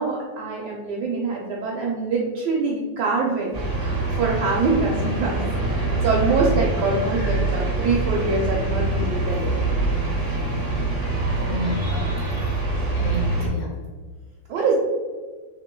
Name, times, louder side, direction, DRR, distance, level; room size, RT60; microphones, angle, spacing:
voice 1, 0.0-9.8 14.5-14.7, right 4 dB, 70° right, -3 dB, 1.1 m, -25 dB
sound 1, 3.5-13.5, right 2 dB, 50° right, 0.7 m, -24 dB
voice 2, 11.4-12.2 12.9-13.8, equal, 70° left, -1 dB, 1.0 m, -30 dB
3.2 x 2.9 x 3.7 m, 1.4 s
omnidirectional pair, 2.0 m